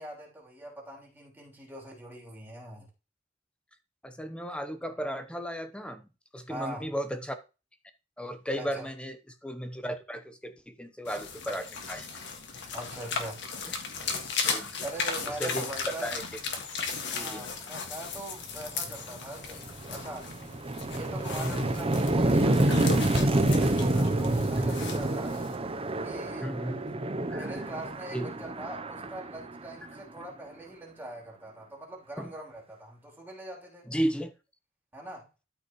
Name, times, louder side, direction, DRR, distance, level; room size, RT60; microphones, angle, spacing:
voice 1, 0.0-2.9 6.5-6.9 8.6-8.9 12.7-13.4 14.8-16.1 17.1-20.3 20.9-25.4 26.0-26.5 27.3-33.9 34.9-35.3, right 1 dB, 10° right, 3.4 m, -42 dB
voice 2, 4.0-6.0 6.3-7.4 8.2-9.2 9.4-12.1 14.5-14.8 15.3-16.2 17.1-17.5 21.4-21.6 26.4-26.8 27.3-27.6 28.1-28.3 32.2-32.3 33.9-34.3, equal, 5° left, 0.9 m, -34 dB
sound 1, 11.0-25.6, left 4 dB, 60° left, 1.8 m, -36 dB
sound 2, 18.9-19.0 19.4-30.2, right 1 dB, 30° right, 0.7 m, -28 dB
13.0 x 5.4 x 3.1 m
head